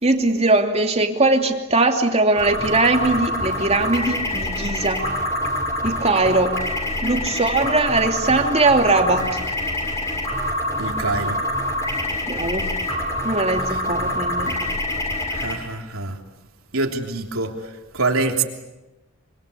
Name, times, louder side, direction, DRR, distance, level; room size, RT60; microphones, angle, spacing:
voice 1, 0.0-5.0 5.8-6.5 7.0-9.3 12.3-12.6 13.2-14.6, right 2 dB, 30° right, 4 dB, 2.8 m, -20 dB
sound 1, 2.4-15.5, left 1 dB, 15° left, 6.7 m, -26 dB
voice 2, 10.8-11.4 13.7-13.8 15.3-16.2 16.7-18.4, right 3 dB, 85° right, 3 dB, 3.3 m, -25 dB
26.0 x 26.0 x 8.5 m, 1.1 s
head